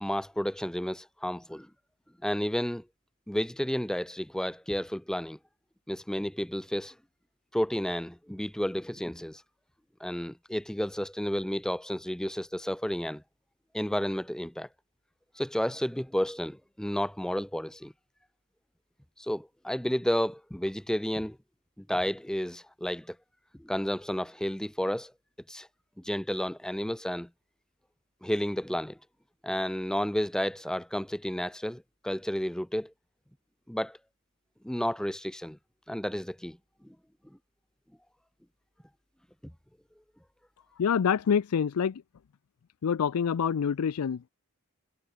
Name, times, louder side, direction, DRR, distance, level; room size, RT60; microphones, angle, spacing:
voice 1, 0.0-1.7 2.2-2.8 3.3-5.4 5.9-6.9 7.5-9.4 10.0-13.2 13.7-14.7 15.4-17.9 19.2-21.4 21.8-23.2 23.6-25.1 25.5-25.7 26.0-27.3 28.2-29.0 29.4-32.9 33.7-34.0 34.6-35.6 35.9-36.6 36.8-37.0, equal, 5° left, 0.5 m, -31 dB
voice 2, 40.8-42.0 42.8-44.3, left 7 dB, 85° left, 0.4 m, -26 dB
head